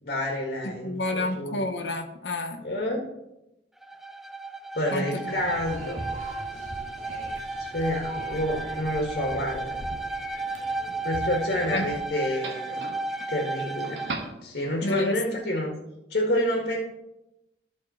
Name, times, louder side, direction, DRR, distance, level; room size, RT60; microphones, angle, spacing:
voice 1, 0.0-1.6 2.6-3.0 4.8-6.0 7.7-9.8 11.0-12.8 13.3-15.7 16.1-16.8, left 1 dB, 50° left, 0 dB, 1.7 m, -28 dB
voice 2, 0.6-2.6 4.9-5.5 11.7-11.9 14.8-15.2, left 1 dB, 75° left, 5 dB, 1.1 m, -30 dB
Bowed string instrument, 3.8-14.3, right 3 dB, ahead, 0.3 m, -34 dB
sound 1, 5.3-12.1, right 1 dB, 40° right, 1.2 m, -41 dB
Doorbell, 5.9-14.9, right 2 dB, 65° right, 1.3 m, -44 dB
14.0 x 4.7 x 4.3 m, 0.89 s
head